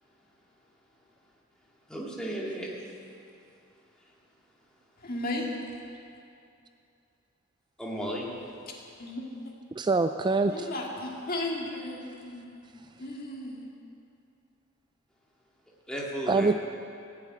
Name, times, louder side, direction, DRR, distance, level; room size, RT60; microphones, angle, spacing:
voice 1, 1.9-2.9 7.8-8.3 15.9-16.5, equal, 5° left, -4 dB, 2.4 m, -34 dB
voice 2, 5.0-5.6 8.7-8.8 9.0-9.2 10.5-12.6 13.0-13.6, left 1 dB, 45° left, -1 dB, 2.1 m, -35 dB
voice 3, 9.8-10.7 16.3-16.5, right 3 dB, 20° right, 8 dB, 0.3 m, -24 dB
17.0 x 7.4 x 9.0 m, 2.5 s
head